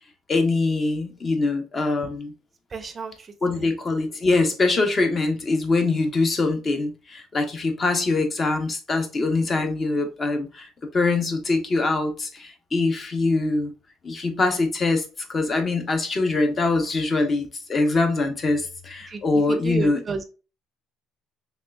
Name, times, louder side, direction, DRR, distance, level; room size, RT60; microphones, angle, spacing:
voice 1, 0.3-2.3 3.4-10.7 10.9-13.7 14.0-20.0, left 3 dB, 30° left, 0.8 m, -23 dB
voice 2, 2.7-3.3 19.1-19.2 19.5-20.2, right 4 dB, 30° right, 0.5 m, -31 dB
3.5 x 3.3 x 2.3 m
cardioid pair, 110°, 0 cm